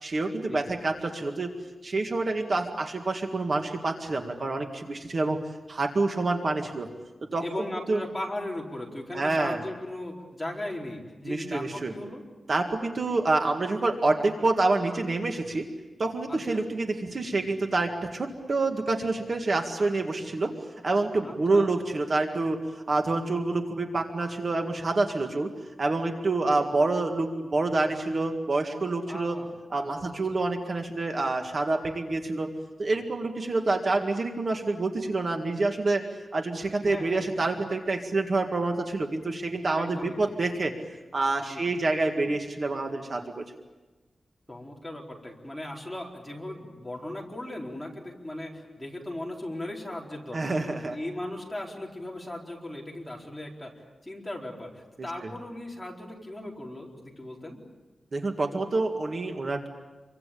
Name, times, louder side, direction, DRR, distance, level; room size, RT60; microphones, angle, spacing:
voice 1, 0.0-1.5 1.8-5.4 5.7-6.9 7.3-7.4 7.9-8.0 9.1-9.6 11.2-11.9 12.5-15.7 16.0-20.5 20.8-25.5 25.8-29.4 29.7-32.5 32.8-36.0 36.3-40.7 41.1-43.4 50.3-51.0 55.2-55.3 58.1-59.7, right 2 dB, 45° right, 4 dB, 2.0 m, -27 dB
voice 2, 7.4-12.2 16.3-16.6 21.2-21.7 29.1-29.5 29.8-29.9 30.3-30.4 36.8-37.4 39.7-40.4 41.5-41.6 44.5-50.6 50.9-57.6, left 1 dB, 5° left, -2 dB, 4.3 m, -37 dB
28.0 x 24.0 x 8.6 m, 1.2 s
wide cardioid pair, 145°, 0 cm